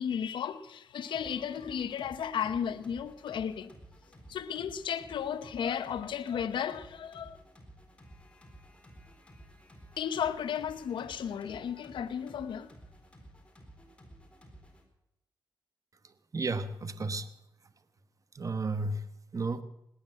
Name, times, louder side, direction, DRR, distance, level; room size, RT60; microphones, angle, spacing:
voice 1, 0.0-3.7 4.3-7.4 10.0-12.7, left 8 dB, 85° left, 0.9 m, -34 dB
sound 1, 1.1-14.8, right 1 dB, 15° left, 4.0 m, -54 dB
voice 2, 16.0-17.3 18.3-19.6, right 3 dB, 45° right, 1.2 m, -33 dB
18.5 x 10.0 x 7.5 m
cardioid pair, 65°, 8 cm